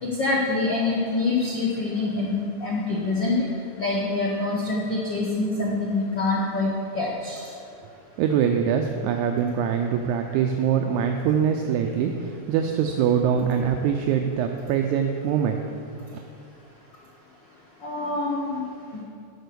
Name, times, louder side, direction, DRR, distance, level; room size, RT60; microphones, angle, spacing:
voice 1, 0.0-3.5 3.8-7.4 17.8-18.6, left 3 dB, 75° left, -3 dB, 1.0 m, -25 dB
voice 2, 8.2-15.6, right 8 dB, 80° right, 4 dB, 1.8 m, -23 dB
12.5 x 4.5 x 6.8 m, 2.4 s
omnidirectional pair, 3.6 m